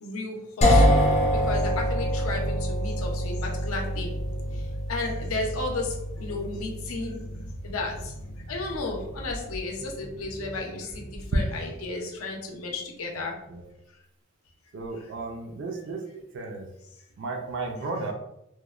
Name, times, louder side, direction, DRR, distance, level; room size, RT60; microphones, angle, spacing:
voice 1, 0.0-1.0 1.4-4.1 4.9-7.2 7.6-7.9 8.5-13.3, left 3 dB, 80° left, 1 dB, 0.6 m, -33 dB
sound 1, 0.6-10.4, equal, 30° left, 0.4 m, -26 dB
sound 2, 4.2-11.6, equal, 85° right, 0.8 m, -43 dB
voice 2, 14.7-16.0 16.3-16.7 17.2-18.1, right 3 dB, 55° right, 2 dB, 0.3 m, -34 dB
2.9 x 2.1 x 2.3 m, 0.84 s
head